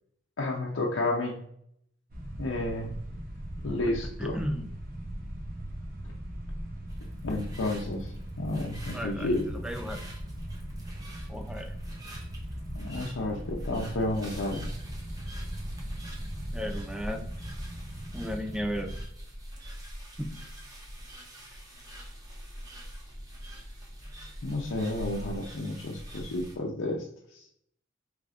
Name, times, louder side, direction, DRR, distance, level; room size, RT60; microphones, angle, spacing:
voice 1, 0.4-1.4 2.4-2.9 3.6-4.4 7.2-8.1 8.4-9.4 12.7-14.7 24.4-27.0, left 2 dB, 85° left, -3 dB, 0.7 m, -31 dB
sound 1, 2.1-19.0, equal, 50° right, 0.8 m, -39 dB
voice 2, 4.2-4.7 8.9-9.3 9.6-10.0 11.3-11.7 16.5-17.2 18.1-18.9 20.2-20.4, equal, 5° right, 5 dB, 0.4 m, -34 dB
sound 2, 6.9-26.5, equal, 20° right, 0.9 m, -44 dB
4.9 x 3.2 x 2.4 m, 0.68 s
head